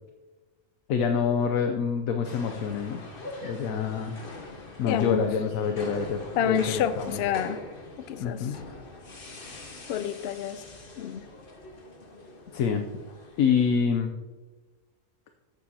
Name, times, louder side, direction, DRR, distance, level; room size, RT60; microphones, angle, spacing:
voice 1, 0.9-3.0 3.4-4.1 4.8-7.2 8.2-8.6 12.5-12.9 13.4-14.1, left 6 dB, 80° left, 5 dB, 1.1 m, -26 dB
Sonicsnaps-OM-FR-e-metro, 2.2-13.5, left 2 dB, 40° left, 1.3 m, -43 dB
voice 2, 4.9-5.2 6.4-7.6 8.1-8.5 9.9-10.6 11.0-11.3, left 9 dB, 65° left, 13 dB, 0.7 m, -28 dB
14.5 x 7.3 x 2.8 m, 1.3 s
omnidirectional pair, 1.5 m